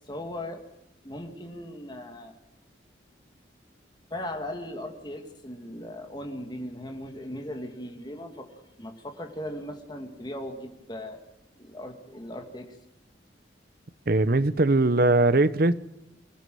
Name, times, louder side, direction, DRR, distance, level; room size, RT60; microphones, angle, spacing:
voice 1, 0.1-0.6 1.0-2.3 4.1-8.5 8.8-11.2 11.6-12.7, left 1 dB, 25° left, 2.3 m, -38 dB
voice 2, 14.1-15.7, right 2 dB, 50° right, 0.8 m, -20 dB
24.5 x 16.5 x 7.8 m
head